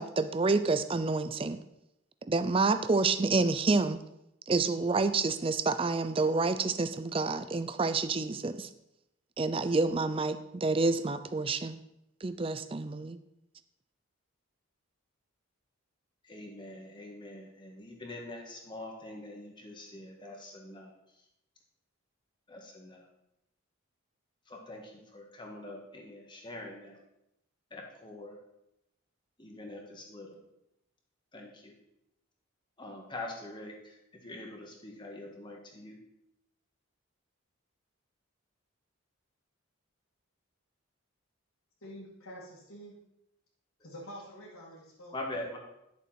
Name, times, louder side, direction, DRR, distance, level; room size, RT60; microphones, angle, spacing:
voice 1, 0.0-1.6 2.2-4.0 4.5-8.7 9.4-11.8 12.2-13.2, right 3 dB, 25° right, 12 dB, 0.4 m, -28 dB
voice 2, 16.2-20.9 22.5-23.1 24.5-27.0 27.7-28.4 29.4-30.4 31.3-31.8 32.8-36.0 45.1-45.6, left 2 dB, 20° left, 1 dB, 1.6 m, -44 dB
voice 3, 41.8-42.9 43.8-45.1, equal, 85° left, -9 dB, 2.5 m, -47 dB
11.0 x 7.1 x 4.4 m, 0.85 s
head